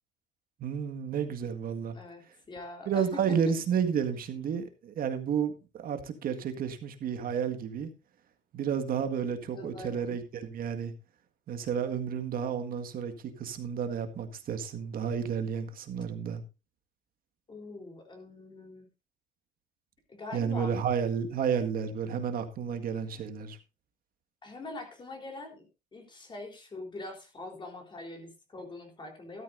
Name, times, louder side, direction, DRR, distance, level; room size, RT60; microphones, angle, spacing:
voice 1, 0.6-2.0 2.9-7.9 8.5-10.9 11.5-16.4 20.3-23.6, right 7 dB, 60° right, 1.8 m, -31 dB
voice 2, 1.9-3.4 9.5-10.1 17.5-18.9 20.1-20.7 24.4-29.4, left 2 dB, 30° left, 3.8 m, -43 dB
13.0 x 12.5 x 2.6 m
cardioid pair, 110°, 17 cm